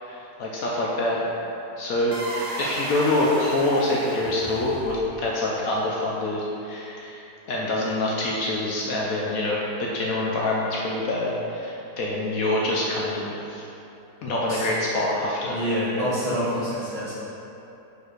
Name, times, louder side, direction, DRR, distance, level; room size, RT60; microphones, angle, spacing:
voice 1, 0.0-1.3 1.8-2.2 2.6-13.6 14.2-15.6, left 1 dB, 65° left, -4 dB, 1.0 m, -26 dB
sound 1, 2.1-5.3, right 1 dB, 70° right, 1.4 m, -34 dB
voice 2, 15.5-17.1, equal, 20° right, -11 dB, 1.6 m, -26 dB
5.0 x 4.5 x 4.5 m, 2.9 s
omnidirectional pair, 1.7 m